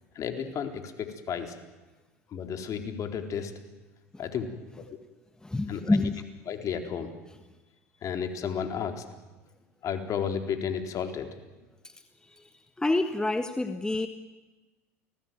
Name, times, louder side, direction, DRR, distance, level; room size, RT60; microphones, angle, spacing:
voice 1, 0.1-1.5 2.3-3.5 4.2-4.5 5.7-6.1 6.5-7.1 8.0-9.0 9.8-11.3, left 7 dB, 40° left, 6 dB, 4.2 m, -32 dB
voice 2, 5.4-6.2 11.8-11.9 12.3-12.4 12.8-14.1, left 2 dB, 10° left, 9 dB, 1.5 m, -27 dB
29.5 x 19.5 x 9.4 m, 1.2 s
hypercardioid pair, 90°, 8 cm